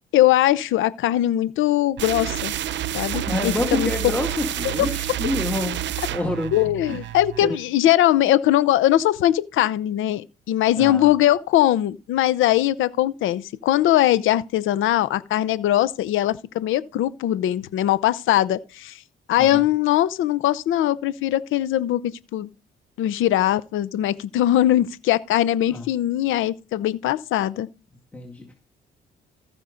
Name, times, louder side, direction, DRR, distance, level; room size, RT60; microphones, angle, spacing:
voice 1, 0.1-2.5 2.9-3.9 4.6-4.7 6.5-19.0 19.3-22.5 23.0-27.7, left 13 dB, 85° left, 0.7 m, -21 dB
sound 1, 2.0-7.6, right 12 dB, 65° right, 0.7 m, -29 dB
voice 2, 3.1-5.8 6.1-7.0 7.4-7.5 10.8-11.1 19.4-19.6 25.7-25.9 28.1-28.5, left 1 dB, 5° left, 2.0 m, -28 dB
14.5 x 5.3 x 5.1 m
cardioid pair, 90°, 20 cm